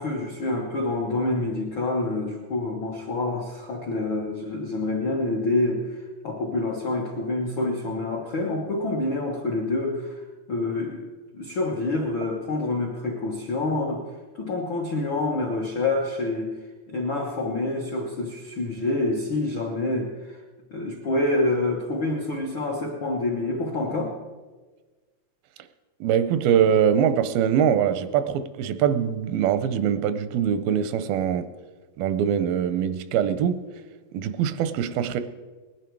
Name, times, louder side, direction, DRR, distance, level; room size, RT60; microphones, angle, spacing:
voice 1, 0.0-14.0 14.3-16.5 16.9-20.4 20.7-24.1, left 2 dB, 70° left, 1.2 m, -27 dB
voice 2, 26.0-31.5 32.0-33.6 34.1-35.2, right 8 dB, 85° right, 2.5 m, -23 dB
19.5 x 11.0 x 4.6 m
omnidirectional pair, 4.2 m